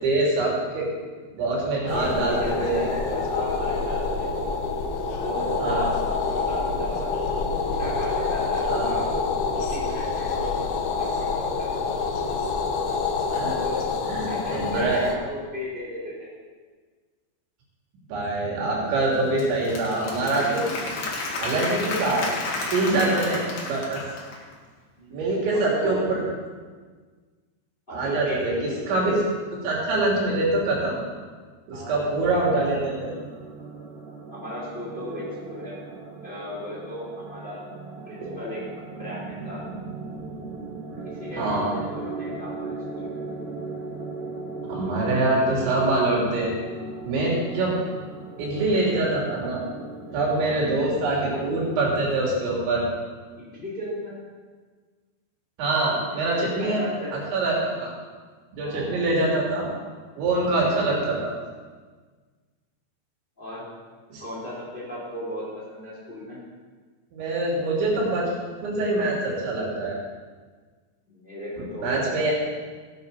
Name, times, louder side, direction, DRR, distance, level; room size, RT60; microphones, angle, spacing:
voice 1, 0.0-0.9 1.3-2.8 5.6-5.9 8.7-8.9 13.3-13.5 14.1-15.0 18.1-20.7 21.4-22.3 22.7-24.0 25.1-26.2 27.9-29.2 29.6-31.0 31.7-33.1 38.2-38.3 41.4-41.7 44.7-46.5 47.1-47.8 48.4-49.6 50.1-52.9 55.6-56.8 57.3-57.9 58.5-59.7 60.2-61.3 64.1-64.2 67.1-68.3 68.6-70.0 71.6-72.3, right 2 dB, 80° right, -4 dB, 5.4 m, -24 dB
sound 1, 1.9-15.2, left 4 dB, 80° left, 1.8 m, -27 dB
voice 2, 1.9-4.3 5.2-7.1 7.6-9.1 9.5-10.6 11.0-11.9 13.6-16.3 25.0-26.0 27.9-28.8 31.7-32.1 34.3-35.7 36.2-37.7 38.1-38.6 38.9-39.6 41.1-43.2 45.0-45.6 50.3-50.6 53.4-54.1 56.2-57.1 58.6-59.0 60.6-60.9 63.4-63.6 64.2-66.4 71.1-72.3, equal, 10° left, -7 dB, 3.2 m, -35 dB
Applause / Crowd, 19.1-24.5, left 3 dB, 65° left, 3.8 m, -32 dB
sound 2, 32.3-51.9, right 3 dB, 45° right, 1.2 m, -38 dB
17.5 x 10.0 x 4.1 m, 1.5 s
omnidirectional pair, 5.2 m